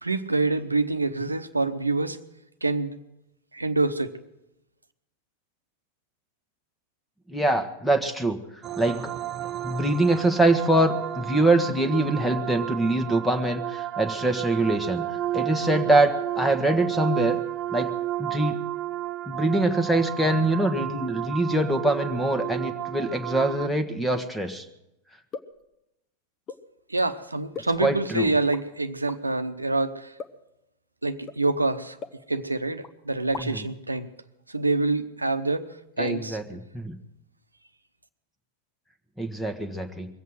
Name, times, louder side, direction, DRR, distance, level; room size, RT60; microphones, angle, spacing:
voice 1, 0.0-2.2 2.6-2.9 3.5-4.2 26.9-30.1 31.0-32.0 32.3-34.1 34.5-35.7 36.0-36.4, right 3 dB, 80° right, 10 dB, 0.9 m, -26 dB
voice 2, 7.3-8.4 8.8-9.1 9.6-15.1 15.3-17.4 17.7-17.9 18.2-18.6 19.3-24.6 27.8-28.3 33.4-33.6 36.0-37.0 39.2-40.1, right 1 dB, 5° left, 6 dB, 1.3 m, -24 dB
sound 1, 8.6-23.7, right 13 dB, 30° right, 0.6 m, -32 dB
sound 2, 25.3-25.6 26.5-26.7 27.5-28.1 28.5-28.6 29.1-29.2 30.2-30.5 31.3-31.4 32.0-32.6 32.8-32.9 33.2-33.7, left 5 dB, 30° left, 1.1 m, -40 dB
22.0 x 8.3 x 7.8 m, 0.86 s
figure-of-eight pair, 90°, 0 cm